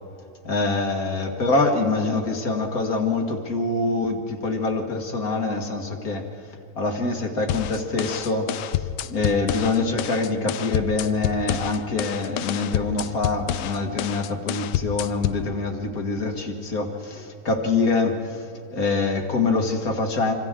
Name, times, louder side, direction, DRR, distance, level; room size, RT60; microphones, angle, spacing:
voice 1, 0.4-6.3 6.8-20.3, left 3 dB, 60° left, 3 dB, 2.2 m, -25 dB
sound 1, 7.5-15.5, left 12 dB, 85° left, 1.3 m, -29 dB
26.5 x 26.0 x 3.8 m, 2.5 s
omnidirectional pair, 1.8 m